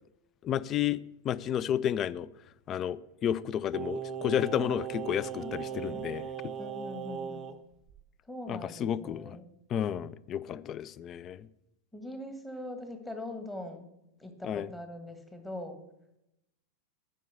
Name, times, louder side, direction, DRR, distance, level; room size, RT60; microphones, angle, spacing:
voice 1, 0.4-2.3 2.7-6.5 8.5-9.4 9.7-11.5 14.4-14.7, left 10 dB, 30° left, 0.4 m, -32 dB
Singing, 3.7-7.6 7.9-8.0, right 9 dB, 25° right, 0.6 m, -38 dB
voice 2, 5.4-6.0 6.6-7.5 8.3-9.5 11.9-13.9 14.2-15.8, left 1 dB, 10° left, 1.4 m, -42 dB
9.1 x 5.3 x 6.7 m
figure-of-eight pair, 90°, 0 cm